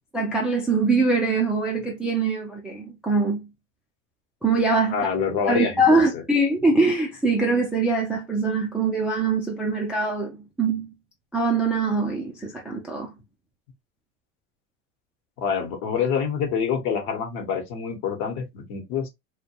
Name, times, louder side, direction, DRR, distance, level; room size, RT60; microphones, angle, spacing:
voice 1, 0.1-3.5 4.4-4.9 5.5-10.9 11.3-13.1, right 3 dB, 5° right, 0.3 m, -23 dB
voice 2, 4.9-6.2 15.4-19.1, left 6 dB, 55° left, 1.0 m, -26 dB
2.2 x 2.2 x 2.7 m
hypercardioid pair, 105°, 40 cm